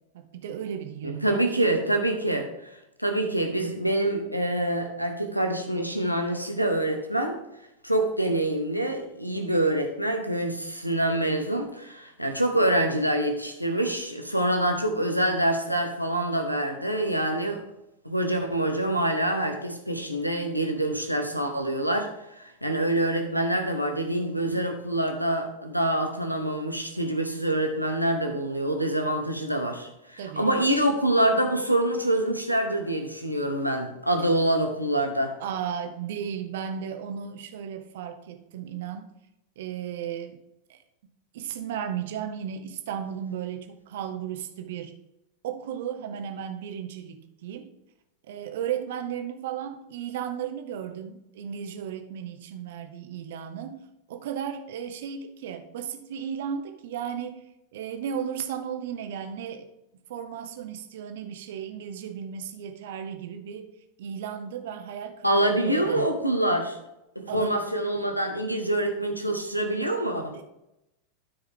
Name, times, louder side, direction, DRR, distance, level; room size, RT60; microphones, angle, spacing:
voice 1, 0.1-1.6 30.2-30.7 35.4-39.1 39.6-40.4 40.7-40.8 41.3-44.9 45.4-47.7 48.3-53.8 54.1-59.7 60.1-63.7 64.0-65.4 65.6-66.1 67.3-67.6 70.3-70.4, right 8 dB, 55° right, 7 dB, 1.0 m, -35 dB
voice 2, 1.0-2.5 3.0-7.4 7.8-17.6 18.0-22.1 22.4-35.3 65.2-66.7 67.1-70.3, right 1 dB, 90° right, 3 dB, 1.1 m, -26 dB
12.5 x 4.8 x 3.7 m, 0.89 s
figure-of-eight pair, 90°, 0 cm